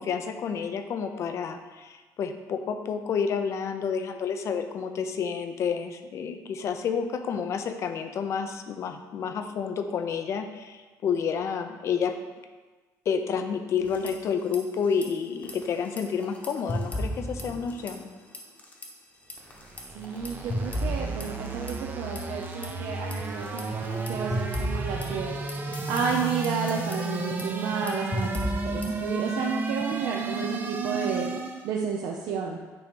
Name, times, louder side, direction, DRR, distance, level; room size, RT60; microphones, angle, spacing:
voice 1, 0.0-12.1 13.1-18.1, left 6 dB, 45° left, 8 dB, 0.6 m, -30 dB
sound 1, 13.8-14.6 14.8-15.1 15.4-18.1 18.3-18.9 19.3-22.7 23.1-29.1, left 1 dB, 20° left, 1.0 m, -35 dB
sound 2, 19.5-31.7, right 4 dB, 30° right, 0.6 m, -33 dB
voice 2, 19.9-32.6, right 5 dB, 70° right, -1 dB, 0.6 m, -32 dB
9.1 x 3.1 x 5.2 m, 1.3 s
cardioid pair, 140°, 7 cm